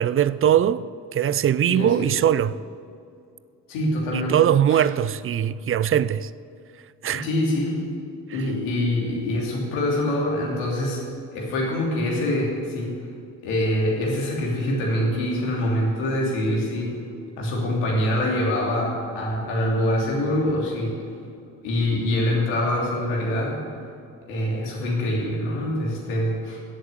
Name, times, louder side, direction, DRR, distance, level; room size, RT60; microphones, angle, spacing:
voice 1, 0.0-2.6 4.1-6.3 7.0-7.3 8.3-8.5, right 10 dB, 30° right, 0.5 m, -21 dB
voice 2, 1.7-2.1 3.7-4.3 4.7-4.8 7.1-7.8 8.3-11.0 11.3-12.9 13.4-16.9 17.4-21.0 21.6-23.6 24.3-26.6, left 1 dB, 80° left, 3.2 m, -24 dB
14.0 x 8.0 x 7.9 m
hypercardioid pair, 45°, 45 cm